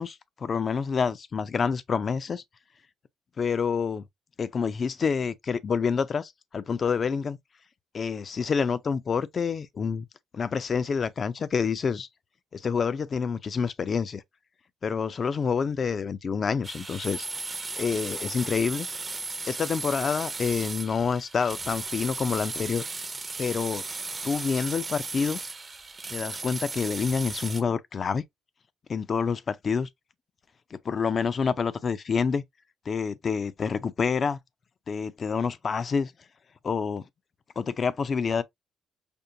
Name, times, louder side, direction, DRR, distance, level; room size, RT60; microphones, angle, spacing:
voice 1, 0.0-2.4 3.4-4.0 4.4-7.4 7.9-10.0 10.3-12.1 12.5-14.2 14.8-17.3 17.8-18.9 19.5-22.9 23.4-23.8 24.2-25.4 26.1-28.2 28.9-29.9 30.7-32.4 32.9-34.4 34.9-36.1 36.6-37.0 37.6-38.4, left 5 dB, 45° left, 0.4 m, -27 dB
sound 1, 16.6-27.6, right 3 dB, 30° right, 0.5 m, -36 dB
5.2 x 2.2 x 2.6 m
cardioid pair, 90°, 0 cm